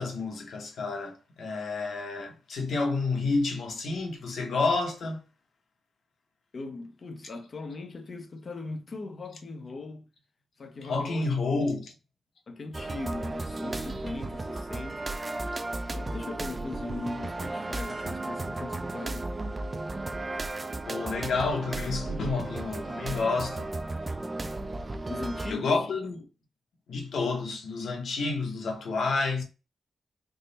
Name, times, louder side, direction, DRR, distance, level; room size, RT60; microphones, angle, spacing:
voice 1, 0.0-5.2 10.8-11.9 20.9-23.7 25.5-26.2 26.9-29.4, left 3 dB, 85° left, 0.9 m, -29 dB
voice 2, 6.5-10.1 10.6-11.3 11.6-11.8 12.5-15.0 15.9-19.3 25.1-25.8, left 3 dB, 40° left, 0.6 m, -39 dB
sound 1, 12.7-25.5, right 2 dB, 25° right, 0.3 m, -34 dB
3.6 x 2.1 x 3.9 m
wide cardioid pair, 165°, 0 cm